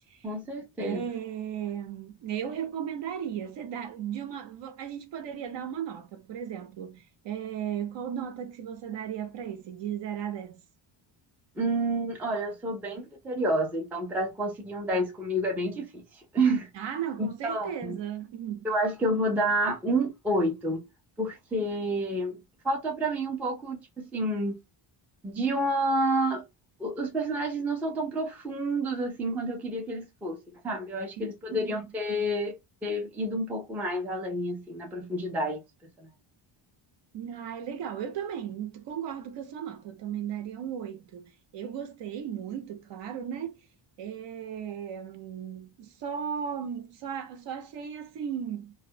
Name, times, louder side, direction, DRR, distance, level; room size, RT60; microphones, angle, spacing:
voice 1, 0.2-1.0 11.6-16.7 17.2-18.0 18.6-20.8 21.2-22.4 22.6-24.6 25.2-26.4 26.8-32.5 32.8-35.6 36.0-36.1, right 1 dB, 5° right, 0.3 m, -29 dB
voice 2, 0.8-10.6 16.7-18.7 31.5-31.9 37.1-41.2 41.5-43.6 44.0-48.7, right 9 dB, 65° right, 0.7 m, -36 dB
2.3 x 2.1 x 2.6 m
cardioid pair, 165°, 47 cm